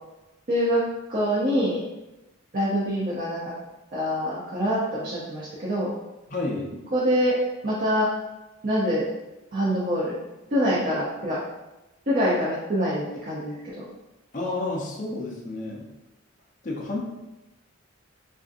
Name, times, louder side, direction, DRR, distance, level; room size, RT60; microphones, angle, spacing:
voice 1, 0.5-0.8 1.1-1.8 2.5-3.5 3.9-5.9 6.9-7.4 7.6-8.1 8.6-9.1 9.5-10.2 10.5-11.4 12.1-13.8, equal, 40° right, -7 dB, 0.6 m, -25 dB
voice 2, 6.3-6.7 14.3-15.9 16.6-17.0, left 2 dB, 40° left, -3 dB, 0.6 m, -30 dB
3.5 x 2.6 x 2.5 m, 1.0 s
head